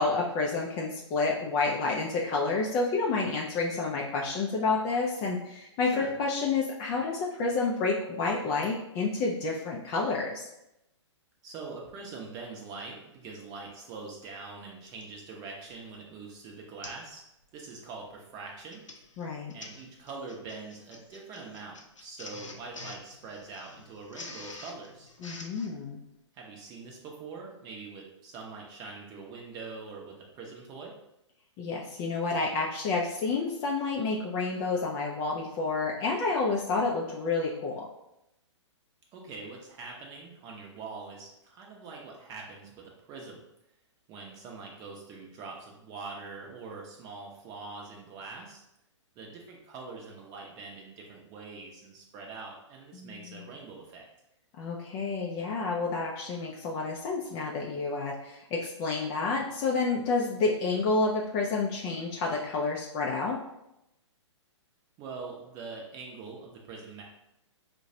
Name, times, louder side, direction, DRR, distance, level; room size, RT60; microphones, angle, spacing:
voice 1, 0.0-10.4 19.2-19.5 25.2-26.0 31.6-37.8 52.9-53.5 54.6-63.4, left 3 dB, 20° left, -2 dB, 0.4 m, -29 dB
voice 2, 11.4-17.2 17.5-18.8 19.5-25.1 26.3-30.9 39.1-43.4 44.1-48.6 49.2-54.0 65.0-67.0, right 4 dB, 25° right, -1 dB, 0.7 m, -43 dB
Printer, 13.7-13.8 14.9-15.1 15.7-15.9 16.2-16.3 16.8-17.1 17.4-17.7 18.5-25.7, left 3 dB, 80° left, 0.6 m, -47 dB
4.6 x 2.2 x 2.7 m, 0.86 s
figure-of-eight pair, 120°, 16 cm